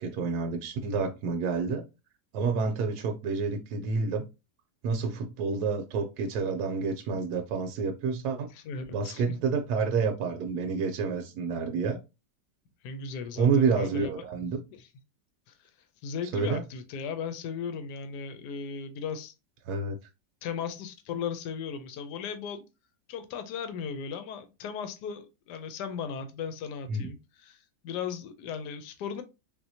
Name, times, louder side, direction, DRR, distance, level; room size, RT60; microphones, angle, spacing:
voice 1, 0.0-1.8 2.3-4.3 4.8-8.5 8.9-12.0 13.4-14.6 16.3-16.6 19.7-20.0 26.9-27.1, right 5 dB, 75° right, 1.1 m, -29 dB
voice 2, 8.5-9.3 12.8-14.2 14.7-14.9 16.0-19.3 20.4-22.6 23.1-29.2, left 6 dB, 80° left, 1.2 m, -37 dB
3.6 x 2.7 x 2.7 m
omnidirectional pair, 1.8 m